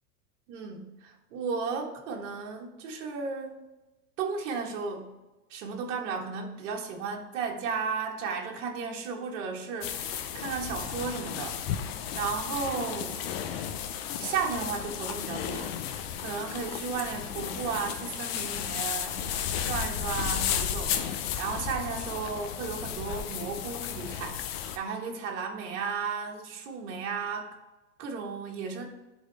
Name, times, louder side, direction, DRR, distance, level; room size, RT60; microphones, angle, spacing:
voice 1, 0.5-3.6 4.2-5.1 5.5-11.9 12.1-13.2 14.2-15.7 16.2-19.2 19.6-24.4 24.7-27.5 28.0-28.8, right 5 dB, 50° right, 1 dB, 1.7 m, -34 dB
sound 1, 9.8-24.8, left 9 dB, 40° left, 0.6 m, -34 dB
11.0 x 4.3 x 3.4 m, 1.1 s
supercardioid pair, 145°, 46 cm